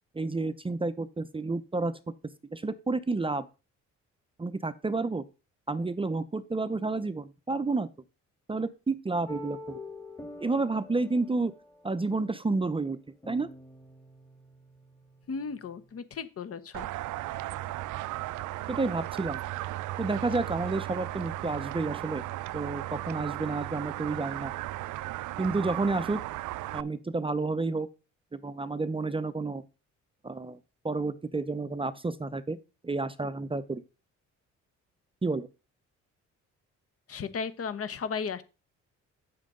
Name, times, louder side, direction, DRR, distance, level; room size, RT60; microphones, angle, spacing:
voice 1, 0.1-1.9 2.5-3.5 4.4-5.2 5.7-7.9 8.5-9.8 10.4-11.5 11.8-13.0 13.3-13.5 18.7-19.4 20.0-22.2 22.5-24.5 25.4-26.2 26.7-27.9 28.3-29.6 30.2-30.6 30.8-32.6 32.8-33.8 35.2-35.5, right 3 dB, 20° right, 13 dB, 0.6 m, -30 dB
sound 1, 9.3-16.0, left 2 dB, 10° left, 1.8 m, -47 dB
voice 2, 15.3-16.9 37.1-38.4, left 5 dB, 50° left, 14 dB, 1.1 m, -35 dB
sound 2, 16.7-26.8, right 16 dB, 80° right, 0.5 m, -36 dB
8.6 x 7.4 x 3.8 m, 0.30 s
cardioid pair, 90°, 30 cm